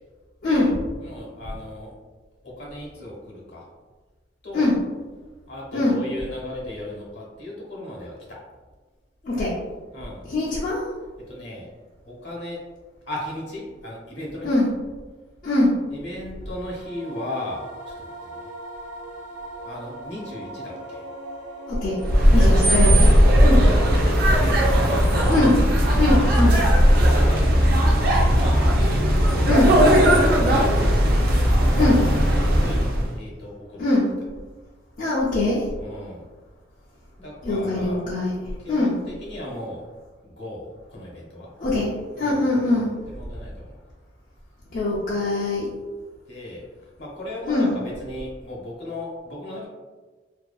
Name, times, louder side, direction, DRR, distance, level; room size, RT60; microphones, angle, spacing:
voice 1, 0.4-0.8 4.5-4.7 5.7-6.0 9.2-9.6 10.3-10.8 14.4-14.7 15.4-15.7 21.7-22.0 22.3-23.1 23.4-23.7 25.3-25.6 25.9-26.6 29.4-29.7 31.7-32.1 33.8-34.1 35.0-35.6 37.4-38.4 38.7-39.0 41.6-42.9 44.7-45.7 47.5-47.8, left 2 dB, 45° left, -8 dB, 0.4 m, -21 dB
voice 2, 1.0-1.9 2.4-3.6 4.4-4.8 5.5-8.4 9.9-10.2 11.3-11.7 12.1-12.6 13.1-14.5 15.9-18.4 19.6-21.0 22.3-22.5 23.3-23.8 24.2-25.3 26.2-26.4 27.0-28.7 29.3-30.7 32.2-32.9 33.1-33.8 35.8-36.2 37.2-38.1 38.6-39.8 40.2-41.5 42.2-43.7 46.3-46.6 47.0-49.7, left 1 dB, 65° left, -3 dB, 0.8 m, -36 dB
sound 1, 16.4-24.6, right 1 dB, 90° right, 1.0 m, -38 dB
sound 2, 22.0-33.1, equal, 50° right, 0.4 m, -17 dB
2.6 x 2.2 x 2.3 m, 1.3 s
head